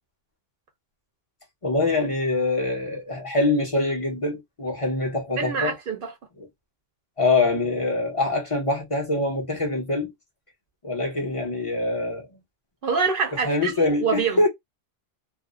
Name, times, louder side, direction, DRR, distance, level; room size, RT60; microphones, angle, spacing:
voice 1, 1.6-5.7 7.2-10.1 10.8-12.3 13.4-14.5, left 2 dB, 30° left, 0.9 m, -24 dB
voice 2, 5.4-6.1 12.8-14.4, right 5 dB, 60° right, 0.7 m, -25 dB
2.6 x 2.0 x 2.4 m
omnidirectional pair, 1.1 m